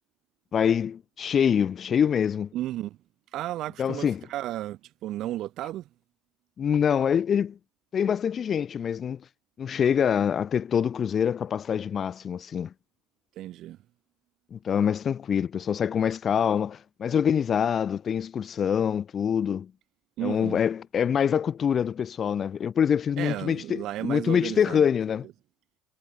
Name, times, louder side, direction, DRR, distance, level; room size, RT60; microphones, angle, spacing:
voice 1, 0.5-2.5 3.8-4.2 6.6-7.6 7.9-9.2 9.6-12.7 14.5-19.7 20.2-25.3, left 8 dB, 40° left, 2.0 m, -25 dB
voice 2, 2.5-3.0 3.3-5.8 13.4-13.8 20.2-20.6 23.2-24.8, right 14 dB, 60° right, 6.4 m, -33 dB
supercardioid pair, 110°, 0 cm